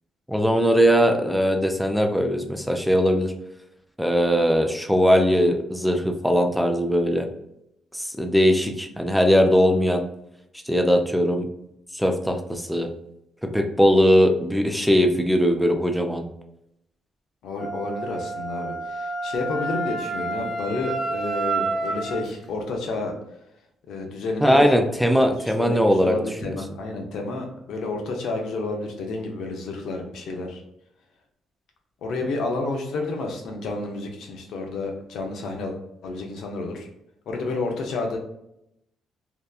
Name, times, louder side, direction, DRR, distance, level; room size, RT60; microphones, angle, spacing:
voice 1, 0.3-3.3 4.0-7.3 7.9-10.0 10.7-11.5 11.9-12.9 13.5-16.3 24.4-26.2 26.4-26.6, equal, ahead, 4 dB, 0.4 m, -20 dB
voice 2, 17.4-23.1 23.9-24.7 25.2-30.6 32.0-35.7 36.0-36.9 37.3-38.2, left 3 dB, 75° left, 2 dB, 0.7 m, -30 dB
Wind instrument woodwind instrument, 17.6-22.3, right 3 dB, 45° right, 0.9 m, -29 dB
2.8 x 2.2 x 2.3 m, 0.80 s
cardioid pair, 90°, 0 cm